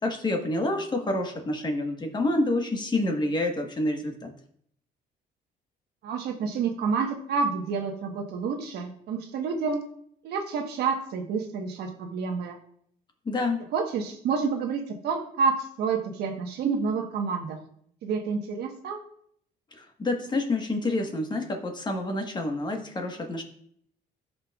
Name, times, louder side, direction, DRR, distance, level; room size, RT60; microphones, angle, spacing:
voice 1, 0.0-4.3 13.2-13.7 19.8-23.4, left 2 dB, 25° left, 4 dB, 1.3 m, -28 dB
voice 2, 6.0-9.9 10.2-12.6 13.7-17.6 18.0-19.0, right 5 dB, 75° right, 4 dB, 1.2 m, -29 dB
14.5 x 5.7 x 2.3 m, 0.65 s
cardioid pair, 110°, 17 cm